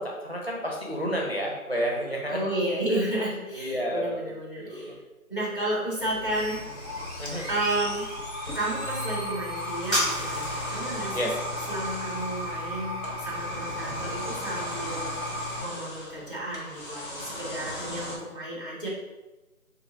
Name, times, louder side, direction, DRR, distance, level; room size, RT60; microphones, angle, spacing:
voice 1, 0.0-2.4 3.4-4.1 4.6-5.0 7.2-7.5 11.1-11.3, equal, 45° right, -2 dB, 0.5 m, -30 dB
voice 2, 2.3-5.0 5.3-6.6 7.5-8.1 8.5-11.3 11.7-15.1 15.6-18.9, right 1 dB, 40° left, -4 dB, 0.7 m, -32 dB
sound 1, 6.0-15.6, equal, ahead, 0.6 m, -33 dB
sound 2, 6.1-18.2, left 1 dB, 65° left, 1.0 m, -39 dB
2.7 x 2.0 x 3.7 m, 1.1 s
figure-of-eight pair, 180°, 44 cm